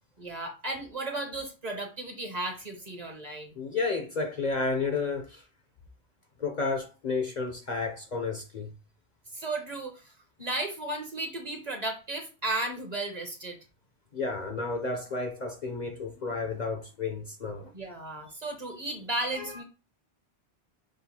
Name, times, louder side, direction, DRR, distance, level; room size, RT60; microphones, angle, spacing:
voice 1, 0.2-3.5 9.3-10.1 10.4-13.6 17.7-19.6, right 2 dB, 40° right, 1.0 m, -34 dB
voice 2, 3.6-5.4 6.4-8.7 14.1-17.7 19.3-19.6, left 4 dB, 45° left, 0.7 m, -32 dB
6.2 x 2.4 x 2.8 m
omnidirectional pair, 1.1 m